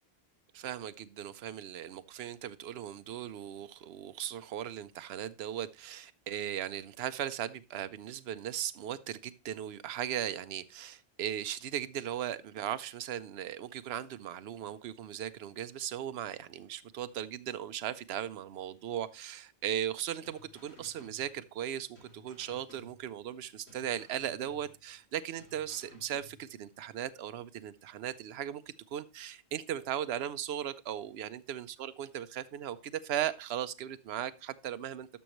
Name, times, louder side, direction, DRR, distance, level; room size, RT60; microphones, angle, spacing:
voice 1, 0.5-35.1, right 10 dB, 75° right, 0.8 m, -37 dB
sound 1, 20.2-21.7 22.0-23.4 23.7-25.1 25.4-26.7, left 2 dB, 75° left, 3.8 m, -58 dB
11.5 x 6.3 x 3.0 m
omnidirectional pair, 1.1 m